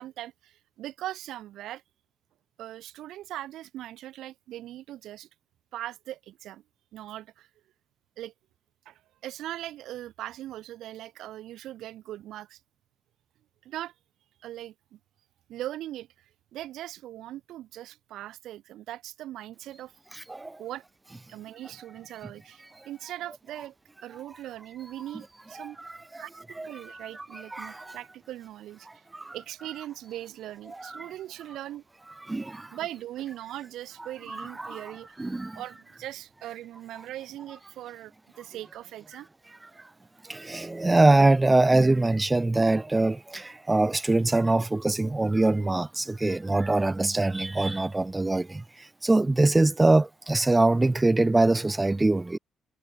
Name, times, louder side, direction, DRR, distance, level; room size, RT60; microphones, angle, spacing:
voice 1, 0.0-1.8 2.6-5.3 5.7-6.6 6.9-7.5 8.2-8.3 8.9-12.6 13.6-13.9 14.4-15.0 15.5-16.3 16.5-19.9 20.6-20.8 21.3-23.7 24.0-25.8 26.2-26.3 26.6-28.9 29.3-31.8 32.7-35.1 35.5-39.3, right 13 dB, 85° right, 2.0 m, -40 dB
voice 2, 25.6-25.9 26.6-28.0 30.8-31.0 32.3-32.6 34.3-34.8 35.2-35.5 40.3-48.6 49.0-52.4, right 2 dB, 15° right, 1.8 m, -23 dB
cardioid pair, 90°, 0 cm